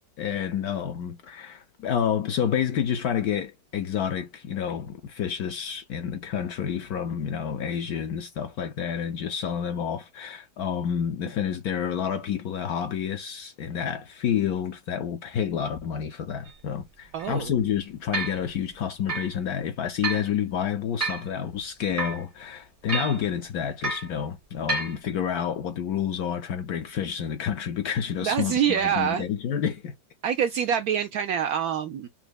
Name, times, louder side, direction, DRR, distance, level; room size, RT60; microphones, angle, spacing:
voice 1, 0.2-29.9, left 8 dB, 70° left, 0.9 m, -29 dB
sound 1, 16.5-16.6 17.2-17.3 18.1-18.4 19.1-19.3 20.0-20.3 21.0-21.3 22.0-22.2 22.9-23.2 23.8-24.1 24.7-25.0, right 3 dB, 35° right, 0.5 m, -29 dB
voice 2, 17.1-17.6 28.2-29.3 30.2-32.1, right 8 dB, 75° right, 0.8 m, -25 dB
5.7 x 2.1 x 2.2 m
omnidirectional pair, 2.0 m